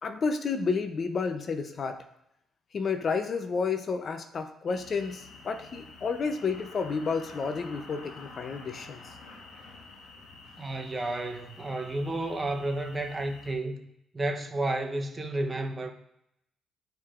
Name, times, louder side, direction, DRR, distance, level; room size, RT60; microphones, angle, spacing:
voice 1, 0.0-2.0 2.7-9.0, left 5 dB, 50° left, 0.6 m, -31 dB
sound 1, 4.7-13.5, left 3 dB, 80° left, 1.1 m, -49 dB
voice 2, 10.6-13.8 14.1-15.9, right 2 dB, 25° right, 0.8 m, -31 dB
9.4 x 4.5 x 2.5 m
cardioid pair, 90°, 0 cm